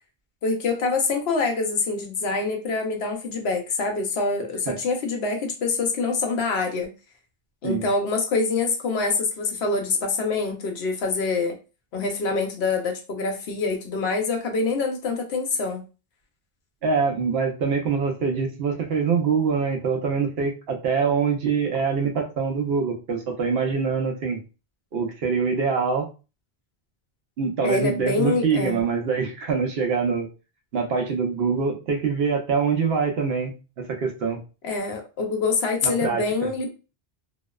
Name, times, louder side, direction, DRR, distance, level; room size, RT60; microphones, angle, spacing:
voice 1, 0.4-6.9 7.6-11.6 11.9-15.8 27.6-28.8 34.6-36.7, left 4 dB, 90° left, 3 dB, 0.9 m, -25 dB
voice 2, 16.8-24.4 24.9-26.1 27.4-30.3 30.7-34.4 35.8-36.5, right 5 dB, 80° right, 3 dB, 0.9 m, -24 dB
2.7 x 2.0 x 2.3 m, 0.31 s
omnidirectional pair, 1.0 m